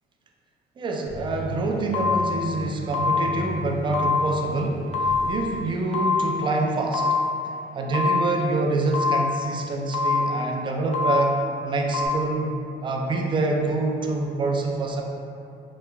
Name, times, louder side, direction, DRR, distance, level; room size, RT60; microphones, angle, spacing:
voice 1, 0.8-7.1 7.7-11.4 11.6-15.0, right 2 dB, 30° right, 0 dB, 0.4 m, -26 dB
sound 1, 1.0-7.4, left 2 dB, 85° left, 1.4 m, -38 dB
sound 2, 1.9-2.5 2.9-3.5 3.9-4.5 4.9-5.5 5.9-6.5 6.9-7.5 7.9-8.5 8.9-9.5 9.9-10.5 10.9-11.5 11.9-12.1, left 4 dB, 40° left, 0.4 m, -25 dB
3.0 x 2.2 x 3.4 m, 2.6 s
cardioid pair, 110°, 17 cm